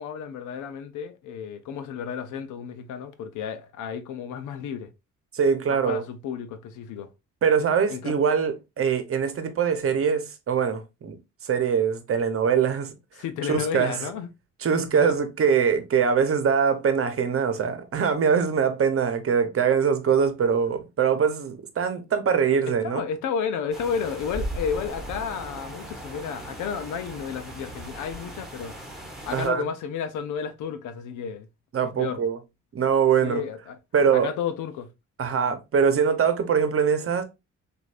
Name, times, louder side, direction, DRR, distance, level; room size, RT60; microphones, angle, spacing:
voice 1, 0.0-4.9 5.7-7.1 7.9-8.1 13.2-14.3 14.9-15.2 22.8-28.7 29.3-31.5 32.0-32.2 33.2-33.8 34.1-34.9, left 7 dB, 80° left, 0.7 m, -32 dB
voice 2, 5.3-6.0 7.4-11.2 11.4-12.9 13.5-14.1 14.6-23.0 29.3-29.6 31.7-32.4 32.7-33.4 33.9-34.3 35.2-37.2, right 6 dB, 45° right, 0.9 m, -23 dB
sound 1, 23.7-29.5, right 1 dB, ahead, 1.4 m, -37 dB
6.3 x 2.6 x 2.5 m
cardioid pair, 90°, 30 cm